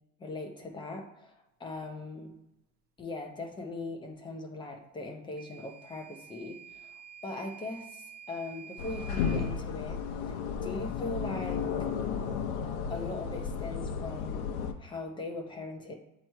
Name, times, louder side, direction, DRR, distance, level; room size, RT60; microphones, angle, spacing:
voice 1, 0.2-2.4 3.0-6.9 7.2-10.0 10.6-11.7 12.9-16.0, left 2 dB, 15° left, 3 dB, 0.6 m, -40 dB
Microwave oven / Alarm, 5.4-9.5, right 8 dB, 30° right, 0.8 m, -49 dB
sound 1, 8.8-14.7, left 6 dB, 85° left, 0.7 m, -33 dB
7.6 x 3.0 x 4.5 m, 0.93 s
cardioid pair, 165°, 33 cm